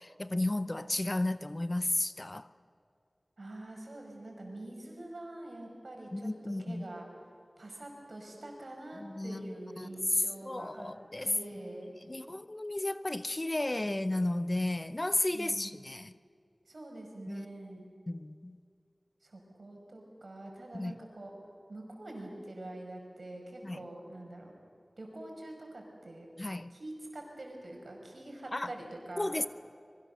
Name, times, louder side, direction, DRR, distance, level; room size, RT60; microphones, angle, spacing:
voice 1, 0.0-2.5 6.1-6.8 9.0-9.9 10.4-11.3 12.1-16.1 17.3-17.5 18.1-18.6 20.7-20.9 23.6-23.8 26.4-26.7 28.5-28.7 29.2-29.5, left 1 dB, 40° left, 0.7 m, -33 dB
voice 2, 3.4-7.1 7.6-10.9 11.2-11.9 15.3-15.7 16.7-17.9 19.2-21.3 21.7-24.5 25.0-26.3 26.7-29.4, right 1 dB, 75° right, 5.5 m, -45 dB
25.5 x 22.0 x 6.8 m
wide cardioid pair, 45°, 0 cm